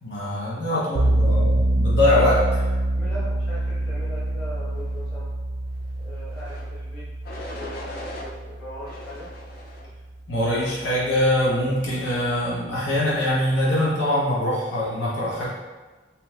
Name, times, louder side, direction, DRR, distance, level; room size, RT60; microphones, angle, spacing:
voice 1, 0.0-2.4 10.3-15.5, left 1 dB, 70° left, -7 dB, 0.8 m, -23 dB
voice 2, 0.7-1.4 2.5-2.6 2.9-5.3 6.0-7.1 7.4-9.3, equal, 10° left, -12 dB, 0.8 m, -40 dB
sound 1, 0.9-9.8, right 1 dB, 70° right, 0.3 m, -25 dB
sound 2, 6.3-6.7 7.2-8.3 8.8-9.9 10.5-10.9, left 1 dB, 50° left, 0.4 m, -39 dB
3.6 x 2.7 x 2.3 m, 1.2 s
head